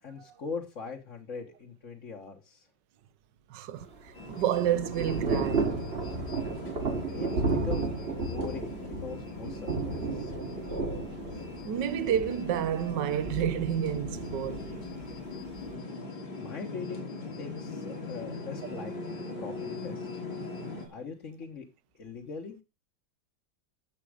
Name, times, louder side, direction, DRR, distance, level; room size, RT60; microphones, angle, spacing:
voice 1, 0.0-2.7 6.9-10.3 16.4-17.1 17.4-18.9 19.4-20.2 20.9-21.6 22.0-22.6, left 5 dB, 45° left, 1.6 m, -41 dB
voice 2, 3.5-3.9 4.3-5.7 11.6-14.7, right 10 dB, 70° right, 1.5 m, -29 dB
Thunder / Rain, 3.8-15.7, right 3 dB, 35° right, 1.6 m, -33 dB
sound 1, 4.1-20.9, left 3 dB, 85° left, 4.7 m, -41 dB
12.5 x 7.4 x 4.9 m
omnidirectional pair, 2.1 m